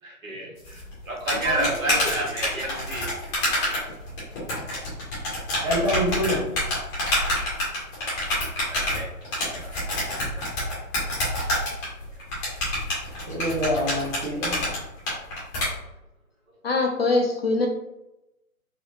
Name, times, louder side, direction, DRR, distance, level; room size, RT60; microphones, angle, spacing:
voice 1, 0.0-3.1 5.6-5.9 7.0-7.2 8.0-8.1 8.6-9.1 9.5-9.9 10.3-10.4 10.7-11.3 15.1-15.2, right 1 dB, 65° right, -2 dB, 1.3 m, -32 dB
sound 1, 0.6-15.7, left 1 dB, 10° left, 0.8 m, -27 dB
voice 2, 5.6-6.4 13.2-14.7, equal, 25° right, -3 dB, 0.7 m, -26 dB
voice 3, 16.6-17.7, left 3 dB, 45° left, 2 dB, 0.5 m, -23 dB
4.1 x 2.1 x 2.8 m, 0.90 s
figure-of-eight pair, 135°, 43 cm